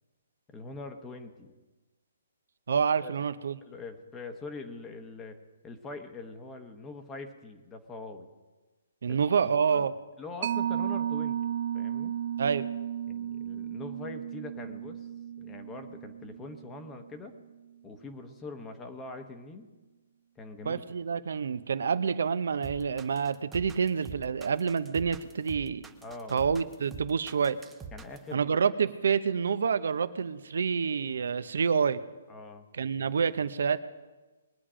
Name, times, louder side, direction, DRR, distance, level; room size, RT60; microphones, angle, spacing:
voice 1, 0.5-1.5 3.0-3.1 3.6-5.4 5.6-8.3 9.1-9.9 10.2-11.4 11.7-12.2 13.1-15.1 15.4-17.3 17.8-19.7 20.4-20.8 26.0-26.4 27.9-28.5 32.3-32.7, left 3 dB, 15° left, 6 dB, 1.0 m, -43 dB
voice 2, 2.7-3.6 9.0-9.9 12.4-12.7 20.6-25.9 26.3-27.6 28.3-32.0 32.7-33.8, right 6 dB, 70° right, 13 dB, 0.8 m, -28 dB
Mallet percussion, 10.4-17.5, right 10 dB, 50° right, 0.4 m, -34 dB
sound 1, 22.6-28.3, right 4 dB, 10° right, 0.6 m, -45 dB
21.5 x 8.7 x 5.0 m, 1.2 s
hypercardioid pair, 160°, 0 cm